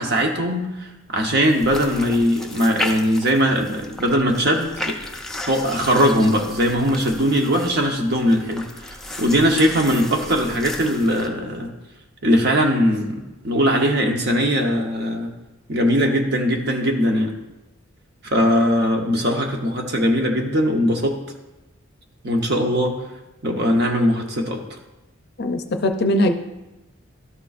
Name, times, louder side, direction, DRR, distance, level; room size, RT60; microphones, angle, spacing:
voice 1, 0.0-5.0 5.5-11.7 12.2-15.3 15.7-17.3 18.3-21.2 22.2-22.9 23.4-24.6, equal, 50° right, 2 dB, 1.0 m, -20 dB
sound 1, 1.4-11.3, left 2 dB, ahead, 0.5 m, -34 dB
voice 2, 25.4-26.3, left 1 dB, 50° left, 7 dB, 0.5 m, -20 dB
12.5 x 6.6 x 2.5 m, 1.0 s
head